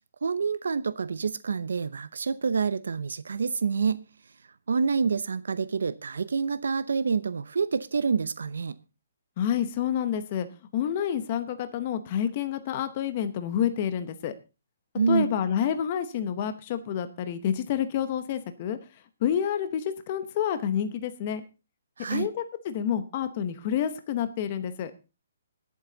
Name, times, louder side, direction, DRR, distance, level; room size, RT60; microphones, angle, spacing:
voice 1, 0.2-4.0 4.7-8.8 15.0-15.3 22.0-22.3, right 5 dB, 80° right, 0.8 m, -27 dB
voice 2, 9.4-10.5 10.7-14.3 15.1-18.8 19.2-21.4 22.1-24.9, left 9 dB, 25° left, 0.9 m, -28 dB
22.0 x 7.5 x 3.9 m
hypercardioid pair, 180°, 0 cm